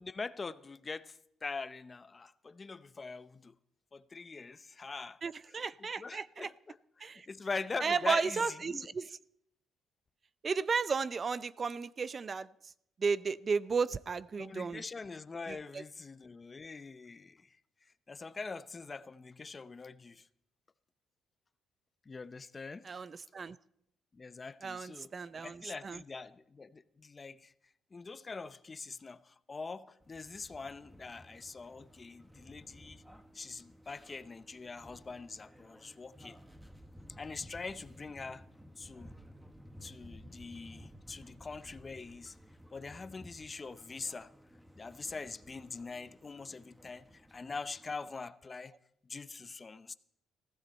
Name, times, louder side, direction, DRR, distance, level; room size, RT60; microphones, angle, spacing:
voice 1, 0.0-3.5 3.9-5.2 6.0-8.9 14.4-17.5 18.1-20.3 22.1-23.0 24.1-25.1 25.4-27.5 27.9-33.0 33.3-36.4 37.2-38.4 38.8-39.1 39.8-42.4 42.7-44.3 44.8-48.7 49.0-49.9, left 4 dB, 30° left, 0.7 m, -43 dB
voice 2, 5.2-6.5 7.0-7.3 7.8-9.2 10.4-12.5 13.0-14.8 15.5-15.8 22.8-23.6 24.6-26.0, right 5 dB, 40° right, 0.5 m, -34 dB
sound 1, 30.0-48.1, equal, 5° right, 1.4 m, -56 dB
20.0 x 15.5 x 4.3 m
cardioid pair, 90°, 0 cm